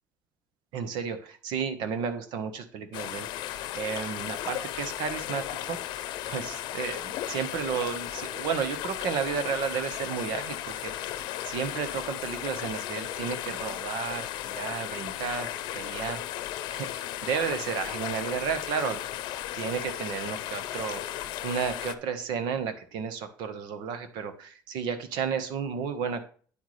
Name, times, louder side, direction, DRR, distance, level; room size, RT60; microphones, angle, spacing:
voice 1, 0.7-16.2 16.7-19.0 19.5-26.3, right 6 dB, 80° right, 9 dB, 1.2 m, -33 dB
sound 1, 2.9-22.0, left 13 dB, 80° left, 0.7 m, -35 dB
9.2 x 8.0 x 3.3 m, 0.43 s
cardioid pair, 165°, 8 cm